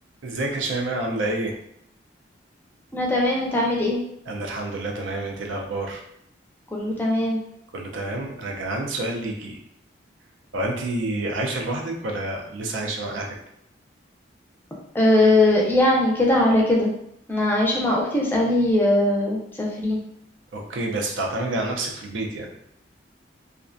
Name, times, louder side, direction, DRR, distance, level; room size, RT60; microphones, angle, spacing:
voice 1, 0.2-1.5 4.3-6.0 7.7-9.6 10.5-13.4 20.5-22.5, right 2 dB, 85° right, 1 dB, 0.5 m, -28 dB
voice 2, 2.9-4.0 6.7-7.4 14.9-16.9 17.3-20.0, left 1 dB, 10° left, -3 dB, 0.4 m, -20 dB
2.4 x 2.1 x 2.5 m, 0.73 s
head